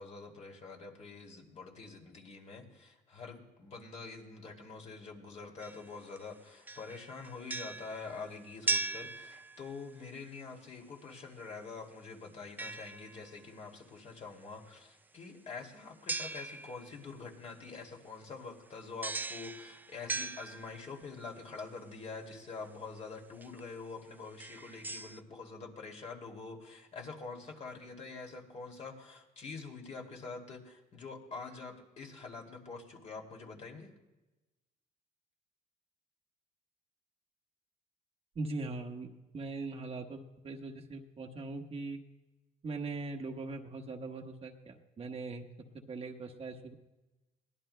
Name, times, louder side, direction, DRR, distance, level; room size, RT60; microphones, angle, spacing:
voice 1, 0.0-33.9, left 4 dB, 40° left, 1 dB, 2.5 m, -46 dB
sound 1, 5.6-6.3 6.7-9.9 12.6-13.5 16.1-17.0 19.0-21.1 22.7-22.8 23.4-23.6 24.2-25.2, right 3 dB, 10° right, 0.4 m, -39 dB
voice 2, 38.3-39.1 39.3-42.0 42.6-45.4 45.7-46.7, right 3 dB, 35° right, 3 dB, 1.2 m, -40 dB
22.5 x 18.0 x 2.2 m, 1.1 s
cardioid pair, 110°, 17 cm